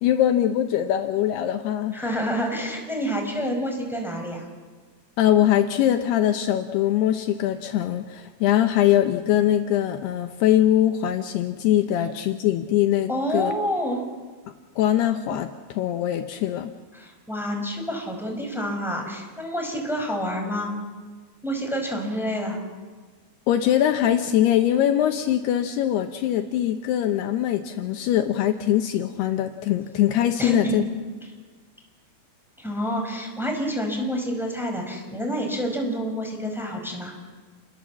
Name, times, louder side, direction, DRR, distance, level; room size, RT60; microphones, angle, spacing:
voice 1, 0.0-2.0 5.2-13.5 14.8-16.7 23.5-30.8, left 11 dB, 75° left, 6 dB, 2.8 m, -22 dB
voice 2, 1.9-4.5 13.1-14.0 16.9-20.8 21.4-22.6 30.4-30.8 32.6-37.1, equal, ahead, 1 dB, 4.6 m, -28 dB
29.5 x 21.0 x 7.4 m, 1.4 s
omnidirectional pair, 5.0 m